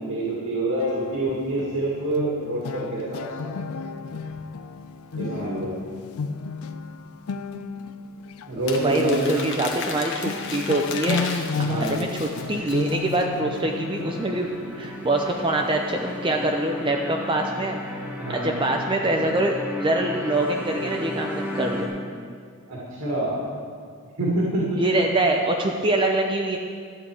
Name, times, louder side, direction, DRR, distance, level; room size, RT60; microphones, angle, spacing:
voice 1, 0.0-3.5 5.1-5.7 8.5-9.5 11.6-12.0 18.2-18.5 22.7-23.4 24.2-24.8, right 1 dB, 75° right, -6 dB, 2.1 m, -26 dB
sound 1, 0.8-8.5 9.1-9.2 9.6-10.0 10.2-15.9, left 4 dB, 75° left, 0.4 m, -33 dB
Crumpling crinkling, 8.7-13.2, left 5 dB, 55° left, 1.1 m, -35 dB
voice 2, 8.8-11.3 11.6-14.5 14.8-17.8 18.3-21.9 24.8-26.6, right 2 dB, 20° right, 1 dB, 0.5 m, -24 dB
sound 2, 12.3-21.9, left 1 dB, 5° right, 1.2 m, -35 dB
12.5 x 8.6 x 4.8 m, 2.1 s
head